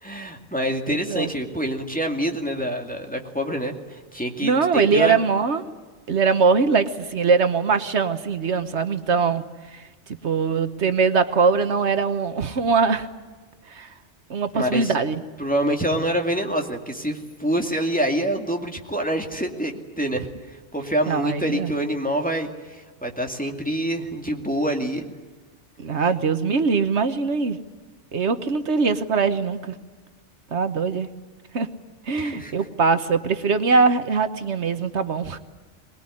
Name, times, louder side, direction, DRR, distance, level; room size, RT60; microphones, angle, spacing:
voice 1, 0.0-5.2 14.5-14.9 15.4-25.1 32.2-32.6, right 1 dB, 5° left, 2 dB, 2.4 m, -26 dB
voice 2, 0.9-1.3 4.4-5.6 6.1-9.4 9.7-9.9 10.2-13.1 13.7-13.9 14.3-15.2 21.1-21.7 25.8-27.6 28.1-29.8 30.5-31.1 31.5-31.7 32.1-35.4, right 5 dB, 75° right, 10 dB, 1.4 m, -22 dB
23.0 x 21.0 x 9.9 m, 1.4 s
omnidirectional pair, 1.2 m